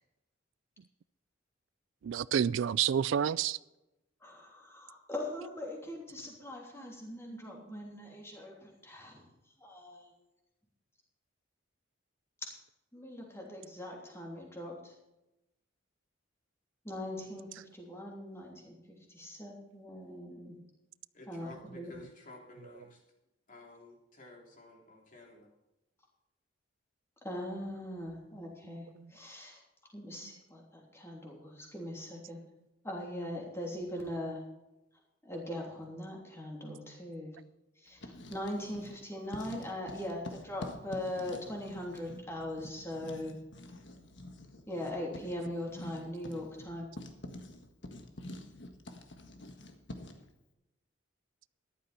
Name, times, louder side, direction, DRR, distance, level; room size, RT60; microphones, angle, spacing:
voice 1, 2.0-3.6 7.3-7.6 8.0-8.1 29.0-29.1, right 8 dB, 70° right, 0.3 m, -30 dB
voice 2, 4.2-9.2 9.6-10.1 12.9-14.9 16.8-17.5 17.7-18.7 19.1-20.6 21.3-21.9 27.2-29.6 29.9-32.4 32.8-34.4 35.2-37.3 37.8-43.3 44.7-46.9, left 1 dB, 15° left, 3.1 m, -41 dB
voice 3, 21.1-23.0 23.5-25.5, left 2 dB, 40° left, 3.2 m, -53 dB
Writing, 37.9-39.0 39.3-50.3, left 1 dB, 60° left, 1.6 m, -47 dB
14.0 x 11.5 x 4.3 m
head